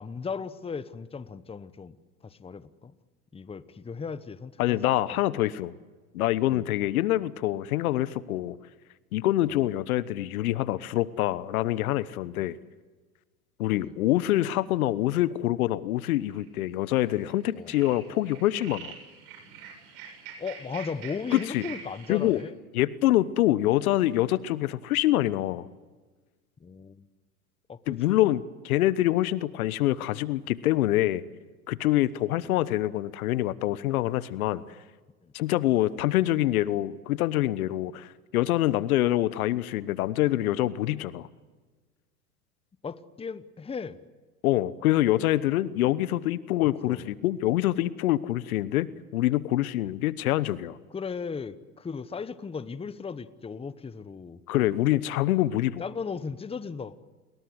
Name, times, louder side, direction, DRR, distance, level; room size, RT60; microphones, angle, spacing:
voice 1, 0.0-2.0 2.2-2.9 3.3-4.8 6.5-6.6 9.5-9.6 12.3-12.4 13.7-13.9 17.5-17.7 20.4-22.5 26.6-27.1 27.7-28.2 35.2-35.3 42.8-44.0 46.6-47.1 50.9-54.7 55.8-57.0, left 5 dB, 15° left, 15 dB, 1.1 m, -37 dB
voice 2, 4.6-5.7 6.1-8.6 9.1-12.6 13.6-18.9 21.3-21.7 22.1-22.4 22.7-25.7 27.9-31.2 31.7-34.6 35.3-41.3 44.4-50.8 54.5-55.8, left 15 dB, 70° left, 18 dB, 1.2 m, -25 dB
sound 1, 16.1-16.5 17.0-17.3 17.6-22.4, right 7 dB, 55° right, 7.6 m, -45 dB
30.0 x 22.0 x 8.0 m, 1.4 s
hypercardioid pair, 95°, 44 cm